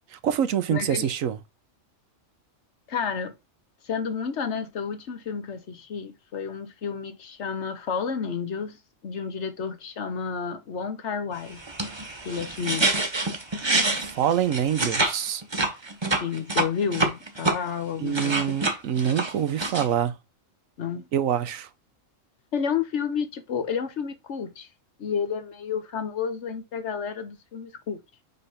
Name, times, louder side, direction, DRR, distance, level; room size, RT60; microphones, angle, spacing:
voice 1, 0.1-1.4 13.9-15.4 18.0-20.1 21.1-21.7, right 9 dB, 85° right, 1.2 m, -25 dB
voice 2, 0.7-1.1 2.9-3.3 3.8-8.8 9.0-11.6 12.2-12.9 16.2-18.4 20.8-21.1 22.5-24.7 25.0-28.0, left 6 dB, 65° left, 1.2 m, -31 dB
sound 1, 11.5-15.2 15.4-17.6 17.9-19.9, right 2 dB, 20° right, 1.1 m, -26 dB
5.5 x 3.3 x 5.6 m
omnidirectional pair, 1.4 m